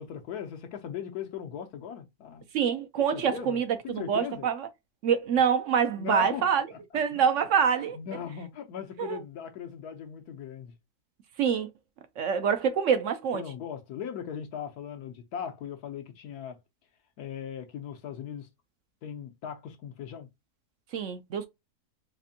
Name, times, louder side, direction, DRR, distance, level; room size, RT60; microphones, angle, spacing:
voice 1, 0.0-2.4 3.0-4.5 5.9-6.8 7.1-7.2 7.8-10.7 13.3-16.6 17.2-18.5 19.0-20.3, left 8 dB, 75° left, 1.2 m, -39 dB
voice 2, 2.5-4.7 5.0-6.6 6.9-8.0 9.0-9.2 11.4-11.7 12.2-13.4 20.9-21.5, right 7 dB, 65° right, 0.8 m, -26 dB
4.2 x 2.5 x 2.6 m
omnidirectional pair, 1.7 m